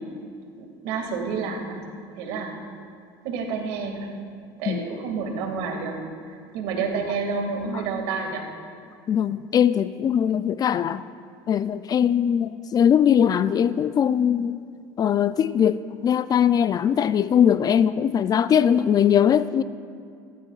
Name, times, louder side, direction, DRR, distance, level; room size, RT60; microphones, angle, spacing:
voice 1, 0.6-1.9 2.2-2.6 3.2-4.1 4.6-6.0 6.5-8.5, right 5 dB, 70° right, 2.2 m, -29 dB
voice 2, 9.1-11.0 11.5-14.6 15.0-19.6, left 8 dB, 35° left, 0.4 m, -21 dB
17.5 x 14.0 x 2.4 m
supercardioid pair, 95°, 11 cm